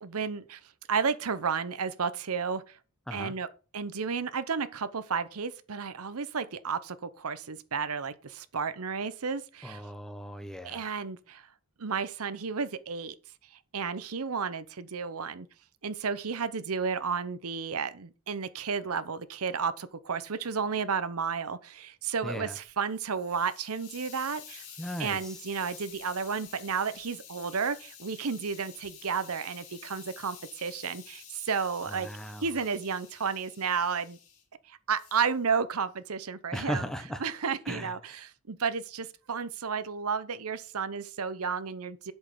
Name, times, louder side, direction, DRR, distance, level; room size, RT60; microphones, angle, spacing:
voice 1, 0.0-0.6 0.9-2.8 3.1-3.5 3.7-9.8 10.6-11.5 11.8-13.1 13.7-15.5 15.8-24.6 25.0-32.1 32.4-34.2 34.7-36.8 37.2-42.1, right 6 dB, 70° right, 0.8 m, -32 dB
voice 2, 9.6-10.9 22.2-22.6 24.8-25.4 31.9-32.4 36.5-37.2 37.7-38.1, equal, ahead, 0.9 m, -37 dB
Hiss, 22.7-34.4 35.0-35.4, left 8 dB, 70° left, 2.7 m, -50 dB
8.0 x 6.5 x 5.1 m
head